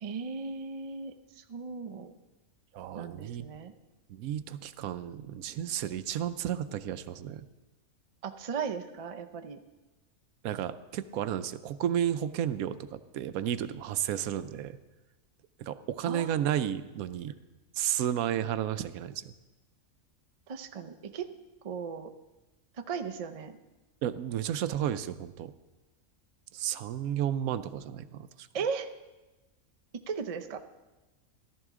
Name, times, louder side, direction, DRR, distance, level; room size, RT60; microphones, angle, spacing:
voice 1, 0.0-2.1 2.9-3.7 8.2-9.6 16.1-16.5 20.5-21.3 21.6-22.1 22.9-23.5 28.5-28.9 30.1-30.6, right 5 dB, 45° right, 6 dB, 0.4 m, -37 dB
voice 2, 2.7-3.5 4.1-7.5 10.4-14.8 15.6-17.3 17.7-19.3 24.0-25.5 26.5-28.3, right 10 dB, 85° right, 13 dB, 1.0 m, -32 dB
14.0 x 12.5 x 3.7 m, 1.1 s
omnidirectional pair, 1.4 m